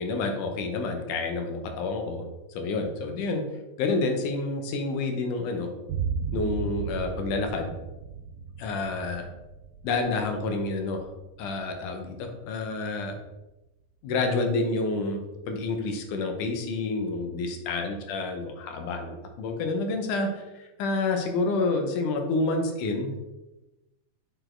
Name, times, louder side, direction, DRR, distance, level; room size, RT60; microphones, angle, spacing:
voice 1, 0.0-3.4 3.8-5.7 6.3-7.7 8.6-9.3 9.8-11.1 11.4-13.2 14.0-15.2 15.5-23.2, left 3 dB, 70° left, 4 dB, 2.2 m, -29 dB
sound 1, 5.9-13.3, right 6 dB, 85° right, 2.3 m, -36 dB
6.8 x 4.3 x 4.4 m, 1.0 s
omnidirectional pair, 4.1 m